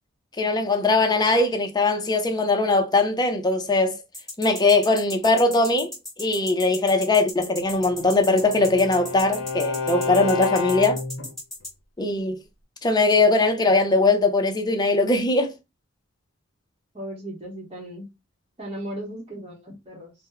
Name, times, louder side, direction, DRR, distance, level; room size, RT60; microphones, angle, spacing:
voice 1, 0.4-4.0 4.4-5.9 6.2-11.0 12.0-12.4 12.8-15.5, left 3 dB, 20° left, 0.5 m, -20 dB
sound 1, 4.1-11.7, left 1 dB, ahead, 1.1 m, -36 dB
Bowed string instrument, 7.7-11.3, left 5 dB, 75° left, 0.6 m, -30 dB
voice 2, 16.9-18.1 18.6-20.1, right 1 dB, 30° right, 0.9 m, -36 dB
2.8 x 2.1 x 3.7 m
head